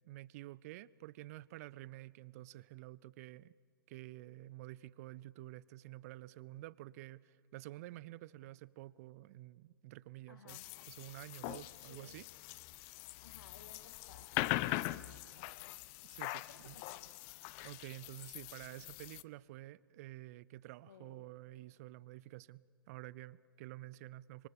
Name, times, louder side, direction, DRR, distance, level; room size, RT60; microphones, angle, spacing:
voice 1, 0.0-3.5 3.9-10.6 10.9-12.3 16.0-16.7 17.6-24.5, right 16 dB, 40° right, 0.5 m, -50 dB
voice 2, 10.3-10.7 11.9-12.2 13.2-14.9 15.4-15.7 16.5-17.1 20.9-21.2, left 5 dB, 70° left, 2.1 m, -59 dB
sound 1, 10.5-19.2, left 19 dB, 35° left, 0.5 m, -42 dB
25.0 x 24.5 x 7.0 m
figure-of-eight pair, 110°, 12 cm